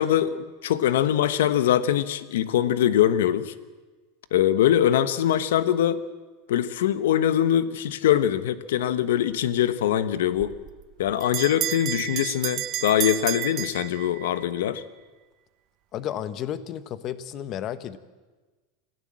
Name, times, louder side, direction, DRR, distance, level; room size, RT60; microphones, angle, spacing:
voice 1, 0.0-3.5 4.3-6.0 6.5-10.5 11.0-14.8, left 11 dB, 90° left, 13 dB, 1.2 m, -23 dB
Bell, 10.4-14.5, right 13 dB, 35° right, 0.7 m, -31 dB
voice 2, 15.9-18.0, left 10 dB, 35° left, 14 dB, 1.1 m, -32 dB
26.0 x 16.0 x 7.6 m, 1.3 s
supercardioid pair, 155°, 0 cm